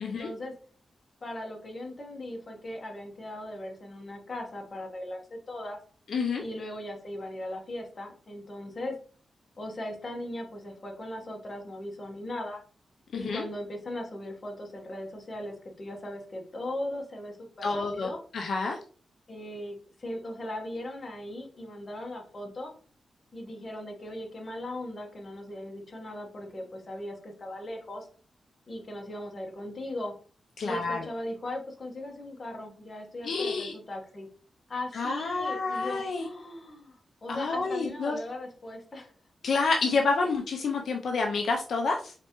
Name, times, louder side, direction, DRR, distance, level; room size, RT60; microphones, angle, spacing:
voice 1, 0.0-0.5 1.2-5.8 6.4-8.9 9.6-12.6 13.1-18.2 19.3-22.7 23.3-28.1 28.7-30.1 30.6-34.3 34.7-37.0 37.2-39.1, left 1 dB, 35° left, 1 dB, 1.1 m, -38 dB
voice 2, 6.1-6.4 13.1-13.4 17.6-18.8 30.6-31.0 33.2-33.7 34.9-36.3 37.3-38.2 39.4-42.1, left 4 dB, 65° left, 2 dB, 0.5 m, -28 dB
4.3 x 3.3 x 2.9 m, 0.41 s
wide cardioid pair, 150°, 0 cm